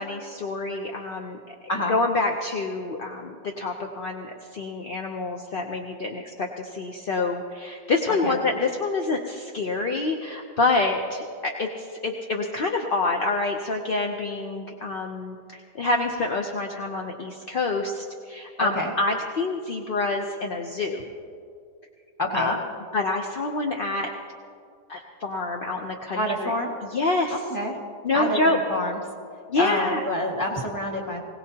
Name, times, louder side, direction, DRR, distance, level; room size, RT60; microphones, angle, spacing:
voice 1, 0.0-1.4 1.9-21.1 22.3-22.6 22.9-24.1 24.9-26.5 26.9-27.4 28.0-28.6 29.5-30.0, left 3 dB, 50° left, 2 dB, 0.7 m, -27 dB
voice 2, 18.6-18.9 22.2-22.5 26.1-26.7 27.3-27.8 28.1-29.0 29.6-31.2, left 1 dB, 10° left, -1 dB, 1.7 m, -27 dB
21.0 x 17.5 x 2.9 m, 2.3 s
omnidirectional pair, 1.8 m